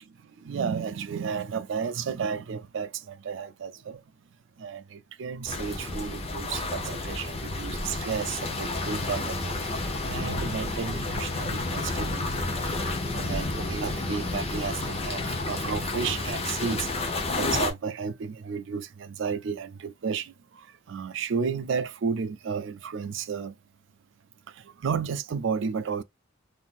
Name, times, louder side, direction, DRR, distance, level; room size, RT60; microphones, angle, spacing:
voice 1, 0.2-4.0 4.6-12.7 13.1-16.9 17.3-23.5 24.5-26.0, right 6 dB, 65° right, 0.4 m, -33 dB
sound 1, 5.4-17.7, left 2 dB, 30° left, 0.7 m, -31 dB
3.7 x 2.6 x 2.4 m
head